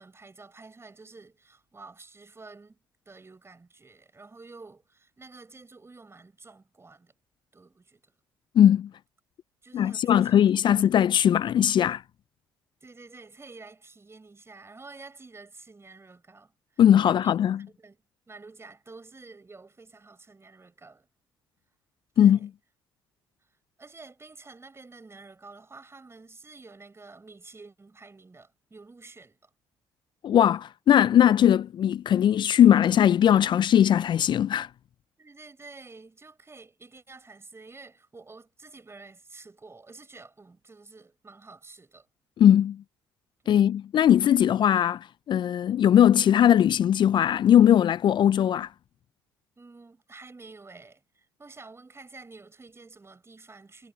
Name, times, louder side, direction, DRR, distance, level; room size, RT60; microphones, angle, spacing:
voice 1, 0.0-2.8 3.0-7.1 7.5-8.1 9.6-10.9 12.8-17.4 17.8-18.0 18.3-21.1 22.1-22.5 23.8-29.5 35.2-42.1 43.4-43.6 49.6-53.9, right 3 dB, 25° right, 6.7 m, -49 dB
voice 2, 8.6-8.9 9.7-12.0 16.8-17.6 22.2-22.5 30.2-34.7 42.4-42.8 43.5-48.7, left 10 dB, 50° left, 0.4 m, -20 dB
hypercardioid pair, 55°, 10 cm